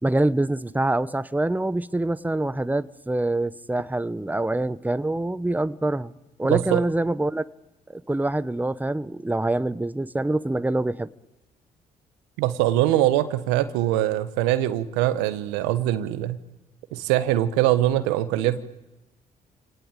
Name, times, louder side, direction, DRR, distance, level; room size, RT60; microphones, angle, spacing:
voice 1, 0.0-6.1 6.4-7.4 7.9-11.1, right 2 dB, 10° right, 16 dB, 1.1 m, -25 dB
voice 2, 6.5-6.8 12.4-16.4 16.9-18.6, right 14 dB, 90° right, 13 dB, 1.4 m, -22 dB
27.5 x 18.5 x 9.0 m, 1.0 s
supercardioid pair, 55°, 18 cm